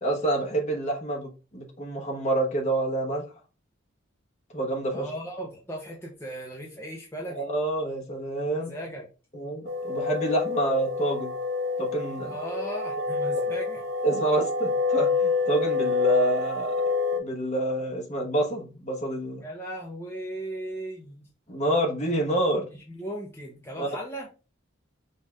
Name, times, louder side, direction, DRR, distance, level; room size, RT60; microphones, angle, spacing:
voice 1, 0.0-3.2 4.5-5.0 7.3-8.7 9.3-11.3 11.8-12.3 14.0-16.7 17.2-19.4 21.5-22.7 23.8-24.0, right 1 dB, 35° left, 0 dB, 1.1 m, -27 dB
voice 2, 4.9-7.4 8.5-9.1 12.2-13.8 19.4-21.3 22.7-24.3, right 1 dB, 10° left, -2 dB, 0.7 m, -37 dB
sound 1, 9.7-17.2, left 4 dB, 80° right, 0.9 m, -27 dB
5.4 x 2.5 x 3.3 m, 0.32 s
head